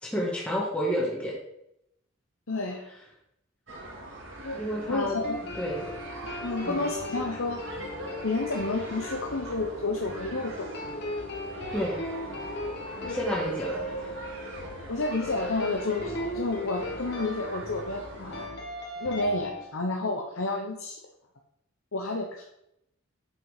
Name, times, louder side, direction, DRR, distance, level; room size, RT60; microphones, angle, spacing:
voice 1, 0.0-1.3 4.6-5.2 5.5-5.9 6.6-6.8 11.7-12.0 13.1-14.1, equal, 5° left, -5 dB, 1.6 m, -30 dB
voice 2, 2.5-2.8 4.4-4.6 4.9-5.4 6.4-7.6 8.2-10.7 13.0-13.2 14.9-18.5 19.0-21.0 21.9-22.4, left 2 dB, 75° left, 0 dB, 1.1 m, -30 dB
sound 1, 3.7-18.5, right 1 dB, 60° right, 2.4 m, -42 dB
sound 2, 5.0-19.6, left 1 dB, 50° left, 1.7 m, -38 dB
8.4 x 6.6 x 4.9 m, 0.79 s
head